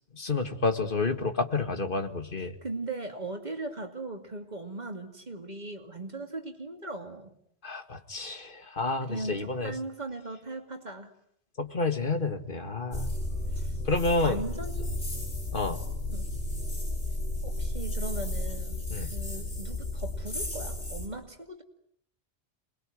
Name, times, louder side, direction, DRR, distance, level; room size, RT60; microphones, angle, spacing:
voice 1, 0.1-2.5 7.6-9.7 11.6-13.1 13.9-14.4 15.5-15.8 18.9-19.1, left 3 dB, 50° left, 7 dB, 2.1 m, -29 dB
voice 2, 2.6-7.3 9.1-11.1 13.5-13.8 14.2-14.9 16.1-16.3 17.4-21.6, right 2 dB, 40° right, 5 dB, 2.8 m, -38 dB
sound 1, 12.9-21.1, left 1 dB, 80° left, 6.9 m, -33 dB
27.5 x 21.5 x 9.4 m, 0.69 s
omnidirectional pair, 1.2 m